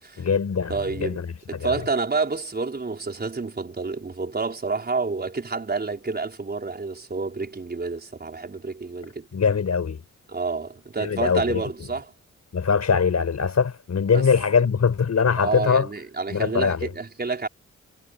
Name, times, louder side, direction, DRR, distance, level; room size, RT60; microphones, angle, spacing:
voice 1, 0.2-0.7 1.0-1.3 1.5-1.7 9.3-10.0 11.0-11.6 12.5-15.9 16.3-16.9, left 6 dB, 60° left, 4.6 m, -22 dB
voice 2, 0.7-1.2 1.5-9.3 10.3-12.1 14.1-14.3 15.4-17.5, right 4 dB, 30° right, 4.8 m, -29 dB
wide cardioid pair, 120°, 31 cm